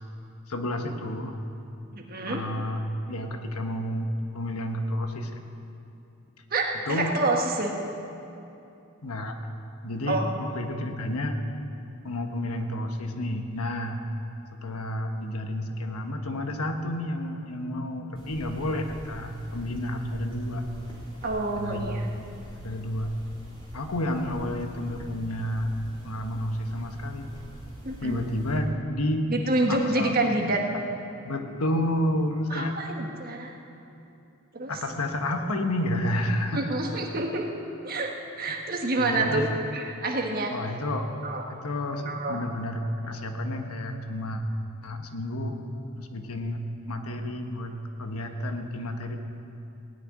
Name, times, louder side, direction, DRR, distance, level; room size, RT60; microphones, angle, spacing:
voice 1, 0.5-1.4 2.3-2.8 3.1-5.4 6.9-7.1 9.0-9.4 9.8-11.4 12.0-14.0 14.5-20.7 21.6-22.0 22.6-23.1 23.7-25.8 26.0-27.3 28.0-29.3 29.7-30.2 31.2-32.7 34.7-36.7 39.0-39.5 40.5-41.1 41.5-44.4 44.8-45.6 46.0-49.2, left 1 dB, 85° left, 5 dB, 1.2 m, -30 dB
voice 2, 1.9-2.4 6.5-7.7 10.1-10.2 21.2-22.1 27.8-28.2 29.3-30.6 32.5-33.5 34.5-34.7 36.5-37.5 37.8-38.1 38.4-39.4 39.7-40.5 41.2-41.4 42.1-42.4, right 2 dB, 40° right, 1 dB, 1.5 m, -27 dB
sound 1, 18.1-28.6, equal, 20° left, 3.8 m, -45 dB
17.5 x 6.7 x 9.9 m, 2.8 s
head